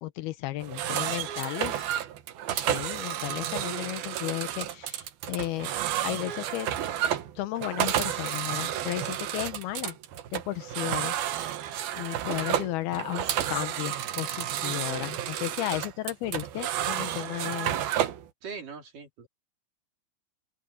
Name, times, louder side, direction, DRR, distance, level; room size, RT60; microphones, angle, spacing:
voice 1, 0.0-1.9 2.5-5.7 6.0-6.7 7.4-10.0 10.3-11.1 12.0-17.8, left 15 dB, 90° left, 2.9 m, -34 dB
sound 1, 0.6-18.3, right 11 dB, 75° right, 3.2 m, -31 dB
voice 2, 18.4-19.3, right 5 dB, 55° right, 5.6 m, -41 dB
open air
omnidirectional pair, 4.5 m